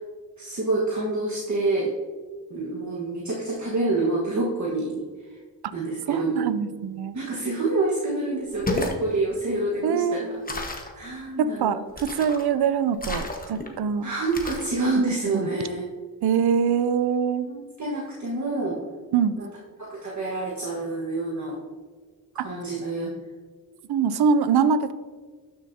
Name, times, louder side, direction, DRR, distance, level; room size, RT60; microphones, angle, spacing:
voice 1, 0.4-1.9 2.5-5.0 5.7-6.4 7.1-11.8 14.0-15.8 17.4-18.8 19.4-19.5 19.8-21.6 22.3-23.1, right 2 dB, 50° right, -4 dB, 1.5 m, -27 dB
voice 2, 6.1-7.2 9.8-10.6 11.4-14.1 15.3-15.5 16.2-17.5 19.1-19.4 22.4-22.5 23.9-24.9, right 6 dB, 80° right, 13 dB, 0.6 m, -24 dB
sound 1, 8.5-9.0 10.5-10.9 12.0-12.5 13.0-13.7 14.3-14.7, left 2 dB, 20° left, 1.2 m, -31 dB
12.0 x 6.8 x 2.8 m, 1.5 s
wide cardioid pair, 85°, 38 cm